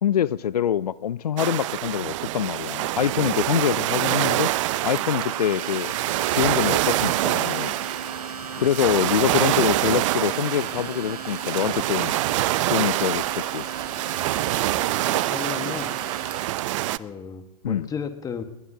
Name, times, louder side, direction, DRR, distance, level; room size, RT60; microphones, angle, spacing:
voice 1, 0.0-4.5 4.8-5.9 6.3-7.7 8.6-12.1 12.7-13.6 17.6-17.9, left 9 dB, 85° left, 19 dB, 0.4 m, -25 dB
sound 1, 1.4-17.0, right 16 dB, 55° right, 0.5 m, -25 dB
Domestic sounds home sounds, 5.0-16.6, right 4 dB, 90° right, 1.3 m, -38 dB
voice 2, 14.7-16.0 17.0-18.4, left 6 dB, 20° left, 8 dB, 1.3 m, -34 dB
20.5 x 19.0 x 2.7 m, 0.98 s
hypercardioid pair, 110°, 19 cm